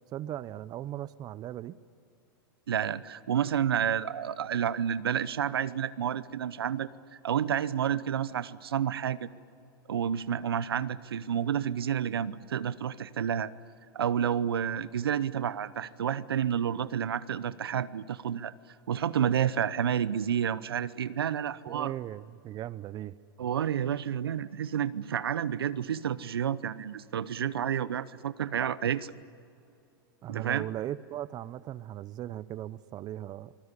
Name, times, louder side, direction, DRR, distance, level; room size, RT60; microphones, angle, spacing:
voice 1, 0.1-1.8 21.7-23.2 30.2-33.5, right 12 dB, 35° right, 18 dB, 0.7 m, -38 dB
voice 2, 2.7-6.9 7.2-9.3 9.9-13.5 13.9-18.5 18.9-21.9 23.4-29.1 30.3-30.7, right 9 dB, 90° right, 16 dB, 0.8 m, -30 dB
25.5 x 20.5 x 9.8 m, 2.6 s
hypercardioid pair, 115°, 12 cm